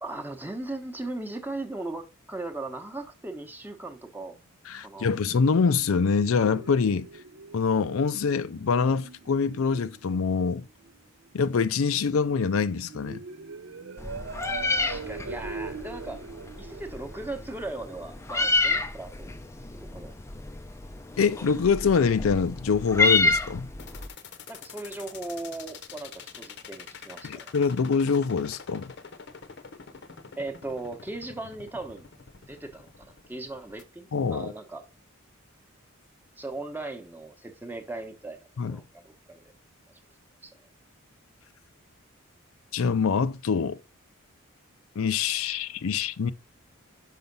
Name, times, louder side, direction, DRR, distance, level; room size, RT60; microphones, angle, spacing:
voice 1, 0.0-4.4 4.8-5.1 14.7-16.2 16.6-19.3 19.9-20.2 24.5-27.5 30.4-32.1 32.5-34.8 36.4-39.5 40.4-40.5, right 2 dB, 10° right, 0.9 m, -38 dB
voice 2, 4.7-7.1 7.5-10.6 11.3-13.2 21.2-23.7 27.2-28.9 34.1-34.5 38.6-38.8 42.7-43.8 45.0-46.3, left 5 dB, 75° left, 0.4 m, -25 dB
sound 1, 4.7-18.7, right 4 dB, 65° right, 0.6 m, -43 dB
Meow, 14.0-24.1, left 3 dB, 15° left, 0.4 m, -29 dB
sound 2, 23.8-33.8, left 6 dB, 55° left, 0.8 m, -45 dB
5.7 x 5.5 x 5.3 m
head